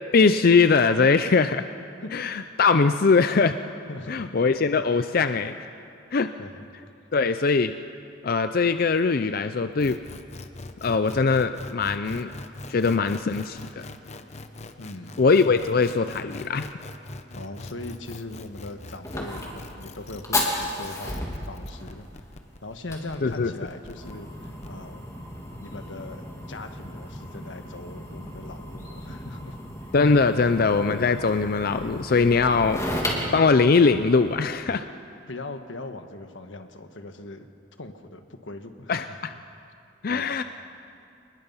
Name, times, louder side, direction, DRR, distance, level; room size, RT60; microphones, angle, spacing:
voice 1, 0.1-1.6 2.1-3.6 4.1-5.6 6.1-6.3 7.1-7.7 8.2-10.0 10.8-12.3 12.7-13.6 15.2-16.7 23.2-23.5 29.9-32.8 33.3-34.8 38.9-39.3 40.0-40.4, left 4 dB, 50° left, 10 dB, 0.5 m, -21 dB
voice 2, 3.9-4.3 6.4-6.6 7.0-7.1 14.8-15.2 17.4-22.3 22.6-25.0 25.6-29.6 35.3-37.5 37.8-39.3 40.1-40.4, left 2 dB, 90° left, 7 dB, 1.4 m, -40 dB
sound 1, 9.8-24.7, left 2 dB, 35° left, 1.0 m, -42 dB
Fire, 18.2-34.4, left 1 dB, 15° left, 2.9 m, -35 dB
27.5 x 20.5 x 5.6 m, 2.6 s
head